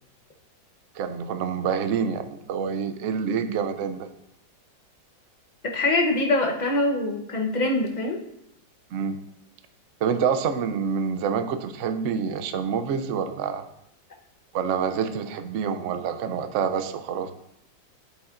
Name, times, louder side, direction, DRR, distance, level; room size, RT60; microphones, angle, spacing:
voice 1, 0.9-4.1 8.9-9.2 10.0-13.6 14.5-17.3, right 6 dB, 70° right, 9 dB, 0.7 m, -27 dB
voice 2, 5.6-8.2, left 2 dB, 40° left, 1 dB, 0.7 m, -24 dB
8.3 x 8.2 x 2.5 m, 0.77 s
omnidirectional pair, 2.1 m